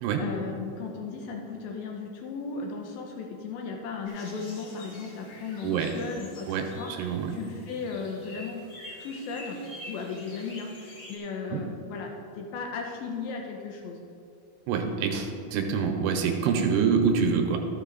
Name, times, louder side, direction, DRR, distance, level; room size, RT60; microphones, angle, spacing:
voice 1, 0.2-6.9 7.3-8.6 9.0-9.6 9.9-12.1 12.4-14.0 16.5-16.7, left 5 dB, 80° left, 1 dB, 2.1 m, -36 dB
sound 1, 4.1-11.2, left 1 dB, 55° left, 3.1 m, -47 dB
voice 2, 7.0-7.3 11.5-11.6 14.7-17.6, right 6 dB, 80° right, 4 dB, 2.7 m, -26 dB
13.5 x 6.2 x 4.0 m, 2.6 s
omnidirectional pair, 5.0 m